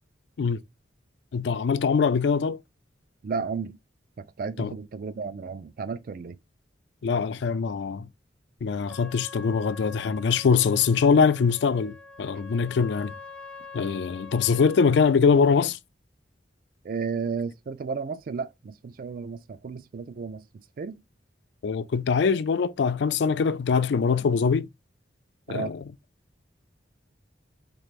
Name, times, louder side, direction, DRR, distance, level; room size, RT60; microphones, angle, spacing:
voice 1, 1.3-2.6 4.6-4.7 7.0-8.1 8.6-13.1 13.7-15.8 21.6-24.7 25.5-25.8, left 5 dB, 65° left, 0.4 m, -23 dB
voice 2, 3.2-3.8 4.2-6.4 16.8-20.5 20.8-21.0 25.5-25.8, right 5 dB, 50° right, 0.3 m, -33 dB
Trumpet, 8.9-15.1, left 4 dB, 5° left, 0.6 m, -45 dB
4.5 x 3.2 x 2.4 m
head